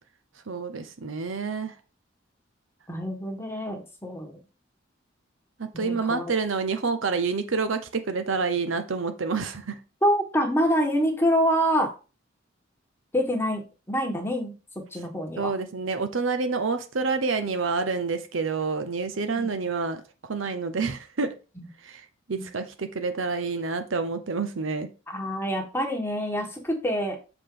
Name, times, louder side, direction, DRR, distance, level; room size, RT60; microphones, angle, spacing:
voice 1, 0.5-1.7 5.6-9.8 15.4-20.0 20.3-21.3 21.8-22.0 22.3-24.9, right 4 dB, 80° right, 0.8 m, -28 dB
voice 2, 2.9-4.3 5.7-6.3 10.0-11.9 13.1-13.6 13.9-14.5 14.9-15.5 19.4-19.5 21.6-21.7 25.1-27.2, equal, 10° left, 1.4 m, -26 dB
6.9 x 4.8 x 3.8 m
head